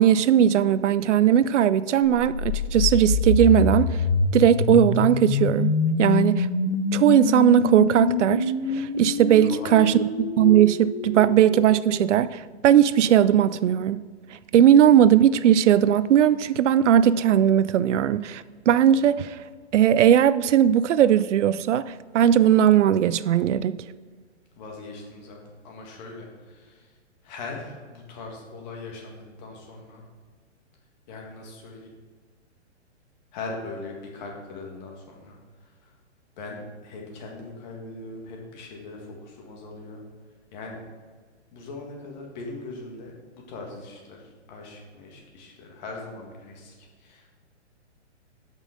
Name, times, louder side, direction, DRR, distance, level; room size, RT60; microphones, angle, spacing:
voice 1, 0.0-4.0 4.3-6.5 6.9-10.1 10.4-14.0 14.5-19.4 19.7-23.8, right 10 dB, 85° right, 0.5 m, -18 dB
sound 1, 2.1-12.1, left 4 dB, 65° left, 1.2 m, -26 dB
voice 2, 9.4-10.0 24.6-25.4 25.6-26.9 27.2-30.0 31.1-31.9 33.3-35.9 36.4-40.0 40.5-40.8 41.5-47.3, left 3 dB, 40° left, 1.9 m, -40 dB
7.4 x 5.5 x 5.0 m
hypercardioid pair, 150°, 35 cm